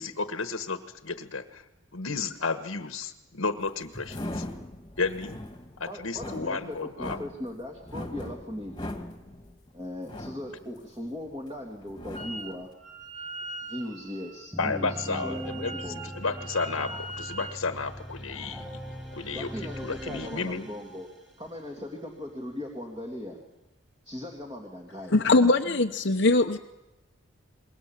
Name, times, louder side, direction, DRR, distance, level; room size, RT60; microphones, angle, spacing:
voice 1, 0.0-1.6 1.9-4.4 5.0-5.4 5.8-7.2 14.6-19.5 19.8-20.7, left 4 dB, 80° left, 8 dB, 1.3 m, -32 dB
sound 1, 3.6-11.5 11.8-12.6, left 1 dB, 20° left, 2.1 m, -40 dB
voice 2, 5.9-8.8 9.7-12.7 13.7-16.1 19.3-21.1 21.4-23.4 24.0-25.1, left 1 dB, 20° right, 1 dB, 2.8 m, -38 dB
Wind instrument woodwind instrument, 12.1-12.6 12.8-17.6, right 3 dB, 35° right, 1.5 m, -41 dB
sound 2, 14.5-21.3, equal, 5° right, 5.6 m, -40 dB
voice 3, 25.1-26.6, left 2 dB, 55° left, 4 dB, 0.9 m, -21 dB
27.5 x 22.0 x 7.4 m, 1.0 s
head